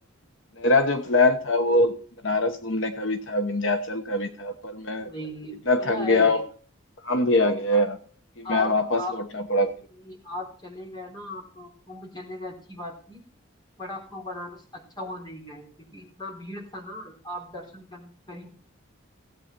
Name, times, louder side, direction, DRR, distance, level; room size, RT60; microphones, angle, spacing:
voice 1, 0.6-2.0 2.2-5.1 5.7-6.4 7.0-8.0 8.4-9.0 9.3-9.7, left 2 dB, 65° left, 7 dB, 1.1 m, -23 dB
voice 2, 5.0-6.4 7.7-7.8 8.4-9.2 9.9-13.3 13.8-18.5, left 1 dB, 20° left, 0 dB, 3.7 m, -38 dB
16.5 x 8.7 x 4.5 m, 0.43 s
head